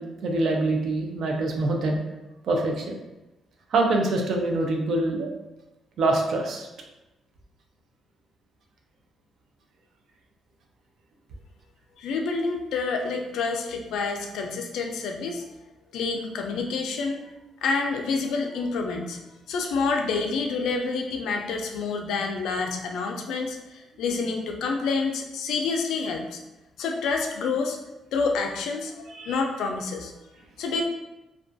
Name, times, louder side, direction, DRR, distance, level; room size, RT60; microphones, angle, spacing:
voice 1, 0.0-2.0 2.4-3.0 3.7-5.3 6.0-6.7 29.2-29.4, right 2 dB, 50° right, 1 dB, 0.4 m, -25 dB
voice 2, 12.0-15.5 15.9-17.2 17.6-19.2 19.5-26.4 26.8-27.8 28.1-30.1 30.6-30.8, left 4 dB, 80° left, 3 dB, 0.3 m, -28 dB
2.3 x 2.2 x 2.5 m, 1.0 s
cardioid pair, 175°, 0 cm